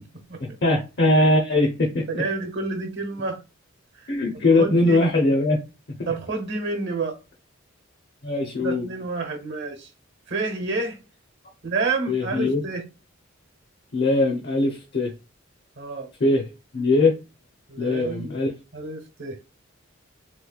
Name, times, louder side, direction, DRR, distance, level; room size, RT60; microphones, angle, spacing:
voice 1, 0.4-2.2 4.1-5.6 5.9-6.0 8.2-8.9 12.1-12.6 13.9-15.1 16.2-16.5 16.7-17.1 17.8-18.5, left 2 dB, 55° left, 0.7 m, -21 dB
voice 2, 2.1-3.4 4.0-4.1 4.3-5.0 6.1-7.2 8.6-9.9 10.3-11.0 11.6-12.8 15.8-16.1 17.7-18.3 18.7-19.4, right 3 dB, 65° right, 1.0 m, -29 dB
3.7 x 3.1 x 2.3 m
head